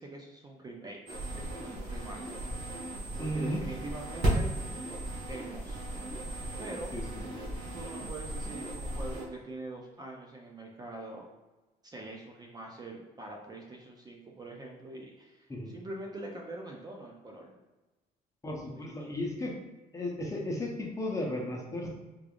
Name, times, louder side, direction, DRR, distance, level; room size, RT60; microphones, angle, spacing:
voice 1, 0.0-2.3 3.2-4.6 5.3-5.8 6.6-6.9 7.3-7.4 7.7-11.3 11.8-17.6 18.7-19.1, right 2 dB, 25° right, 0 dB, 0.5 m, -44 dB
sound 1, 1.1-9.2, right 1 dB, 85° right, 1.3 m, -35 dB
voice 2, 3.2-3.6 6.9-7.0 15.5-15.7 18.4-19.5 19.9-21.9, left 1 dB, 20° left, -1 dB, 0.7 m, -34 dB
3.6 x 3.3 x 2.3 m, 1.1 s
cardioid pair, 110°, 17 cm